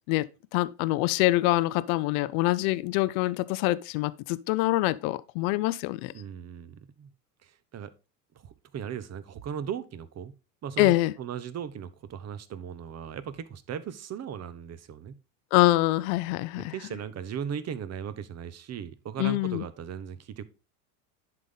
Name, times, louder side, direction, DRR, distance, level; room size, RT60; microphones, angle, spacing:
voice 1, 0.1-6.1 10.8-11.1 15.5-16.7 19.2-19.6, left 18 dB, 65° left, 0.6 m, -25 dB
voice 2, 6.1-7.1 7.4-7.9 8.3-10.3 10.6-15.2 16.7-20.4, right 8 dB, 35° right, 0.9 m, -37 dB
10.5 x 3.9 x 3.8 m
hypercardioid pair, 85°, 47 cm